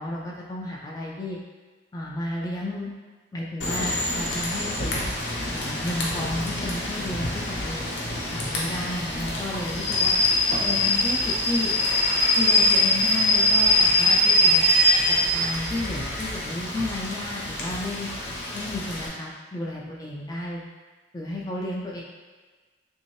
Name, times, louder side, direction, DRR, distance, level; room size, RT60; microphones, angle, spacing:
voice 1, 0.0-1.4 1.9-2.9 3.3-4.9 5.5-7.9 8.3-10.1 10.6-11.7 12.4-14.7 15.1-18.1 18.5-20.7 21.1-22.0, left 1 dB, 20° left, -4 dB, 0.3 m, -32 dB
Rain / Train, 3.6-19.1, left 1 dB, 80° left, 0.8 m, -24 dB
3.4 x 2.7 x 3.1 m, 1.3 s
head